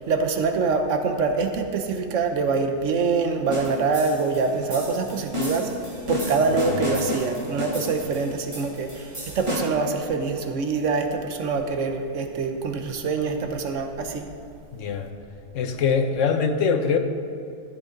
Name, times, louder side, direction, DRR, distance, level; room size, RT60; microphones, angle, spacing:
voice 1, 0.0-5.7 6.1-9.1 9.3-14.3, right 4 dB, 80° right, 6 dB, 1.2 m, -25 dB
sound 1, 3.5-9.9, left 1 dB, 25° right, 1.9 m, -32 dB
voice 2, 6.5-7.1 14.7-15.1 15.5-17.0, left 6 dB, 90° left, 6 dB, 1.1 m, -24 dB
13.5 x 7.5 x 3.8 m, 2.5 s
omnidirectional pair, 1.3 m